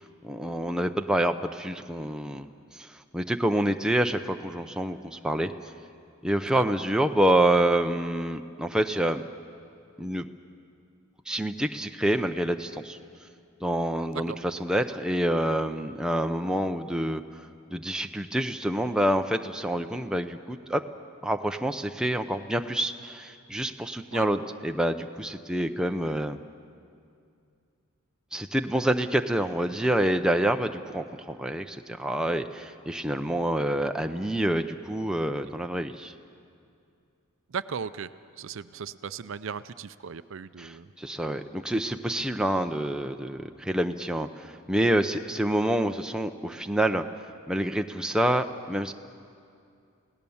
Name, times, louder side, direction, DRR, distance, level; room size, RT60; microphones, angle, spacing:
voice 1, 0.2-2.5 2.7-5.5 6.2-9.2 10.0-10.3 11.3-13.0 13.6-17.2 17.7-20.8 21.2-26.4 28.3-36.1 40.6-47.0 47.5-48.9, right 1 dB, 5° right, 5 dB, 0.6 m, -27 dB
voice 2, 37.5-38.1 38.4-40.9, right 6 dB, 60° right, 14 dB, 0.5 m, -37 dB
28.5 x 17.5 x 7.1 m, 2.4 s
head